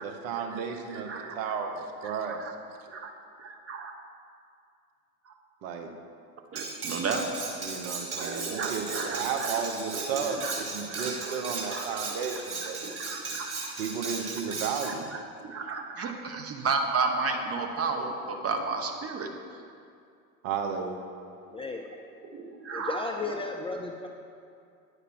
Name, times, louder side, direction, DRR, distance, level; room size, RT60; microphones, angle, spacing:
voice 1, 0.0-2.4 5.6-5.9 7.6-12.8 13.8-15.0 20.4-21.0, right 6 dB, 60° right, 5 dB, 1.1 m, -33 dB
voice 2, 0.9-1.5 2.0-2.5 2.9-3.1 3.4-3.9 5.3-5.4 6.5-7.3 8.2-10.5 10.9-11.4 11.7-11.8 12.6-13.7 14.8-19.3 22.3-23.0, right 4 dB, 30° right, 4 dB, 1.2 m, -33 dB
Cutlery silverware, 6.6-14.9, right 3 dB, 90° right, 1.5 m, -36 dB
voice 3, 21.5-21.9 22.7-24.1, left 3 dB, 15° left, 2 dB, 0.5 m, -34 dB
9.6 x 5.1 x 6.2 m, 2.4 s
hypercardioid pair, 80°, 44 cm